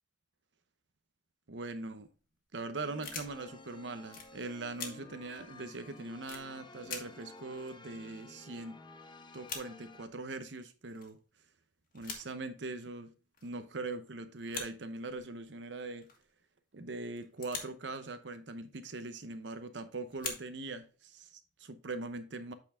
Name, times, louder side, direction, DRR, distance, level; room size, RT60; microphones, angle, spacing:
voice 1, 1.5-2.1 2.5-8.8 9.3-11.2 11.9-13.1 13.4-16.1 16.7-22.5, right 3 dB, 70° right, 0.8 m, -41 dB
sound 1, 2.0-2.3 3.0-3.7 4.1-4.3 4.7-4.9 5.4-5.5 6.3-6.4 6.8-7.0 7.3-7.4 7.5-8.6 8.9-9.0 9.2-9.6 10.4-10.5 10.9-11.2 11.8-12.2 13.3-13.6 14.4-14.7 15.0-15.5 16.0-16.3 17.2-17.8 18.9-19.1 20.1-20.9, left 5 dB, 45° left, 1.5 m, -43 dB
sound 2, 2.8-10.1, left 2 dB, 25° left, 0.6 m, -53 dB
8.3 x 4.5 x 3.7 m
head